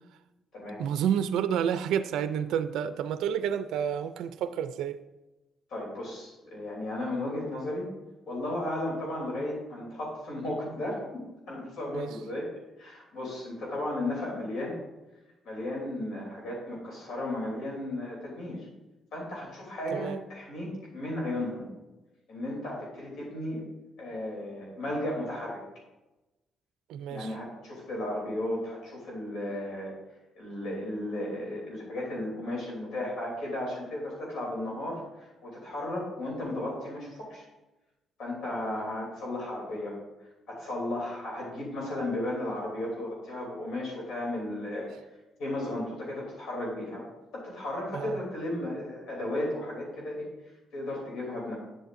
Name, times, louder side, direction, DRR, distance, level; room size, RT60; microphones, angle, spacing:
voice 1, 0.8-5.0 11.9-12.2 19.9-20.2 26.9-27.3 47.9-48.2, right 9 dB, 85° right, 11 dB, 0.4 m, -30 dB
voice 2, 5.7-7.9 8.3-12.5 12.8-14.8 15.4-18.7 19.1-21.7 22.3-23.6 24.0-25.6 27.1-29.9 30.3-35.0 35.4-37.4 38.2-40.0 40.5-44.9 45.4-47.0 47.3-50.3 50.7-51.6, left 1 dB, 75° left, -3 dB, 3.0 m, -34 dB
9.9 x 7.8 x 2.6 m, 1.0 s
cardioid pair, 90°, 0 cm